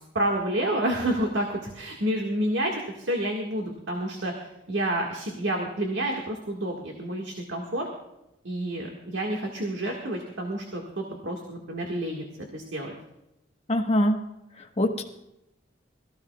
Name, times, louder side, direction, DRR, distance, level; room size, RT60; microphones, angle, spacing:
voice 1, 0.1-4.3 4.7-7.9 8.4-12.2 12.5-12.9, right 1 dB, 75° right, 1 dB, 1.7 m, -29 dB
voice 2, 13.7-14.2 14.6-15.0, left 1 dB, 35° left, 3 dB, 1.2 m, -24 dB
22.0 x 14.5 x 2.3 m, 0.88 s
head